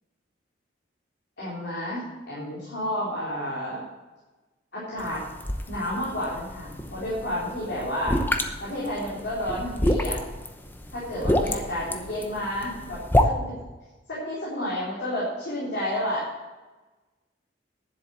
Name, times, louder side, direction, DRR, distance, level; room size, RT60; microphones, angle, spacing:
voice 1, 1.4-3.8 4.7-5.2 5.7-8.2 8.6-10.2 10.9-13.6 14.1-16.3, left 1 dB, 60° left, -8 dB, 3.9 m, -31 dB
sound 1, 5.0-13.2, left 1 dB, 10° left, 0.8 m, -28 dB
10.5 x 7.6 x 6.4 m, 1.2 s
head